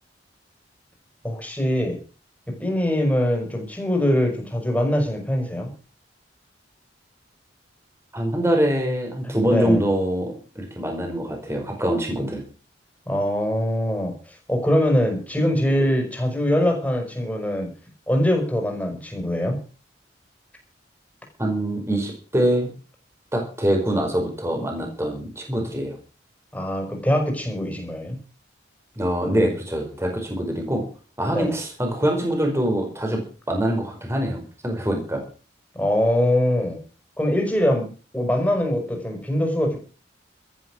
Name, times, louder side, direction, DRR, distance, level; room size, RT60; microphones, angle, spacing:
voice 1, 1.2-2.0 2.6-5.7 9.2-9.8 13.1-14.1 14.5-17.7 18.1-19.6 26.5-28.2 31.3-31.5 35.7-36.8 37.2-37.9 38.1-39.8, left 1 dB, 10° left, 2 dB, 5.7 m, -23 dB
voice 2, 8.1-12.4 21.4-22.7 23.3-25.9 29.0-30.8 31.2-33.2 33.5-35.2, right 1 dB, 15° right, 2 dB, 5.0 m, -24 dB
14.0 x 13.0 x 6.3 m, 0.38 s
head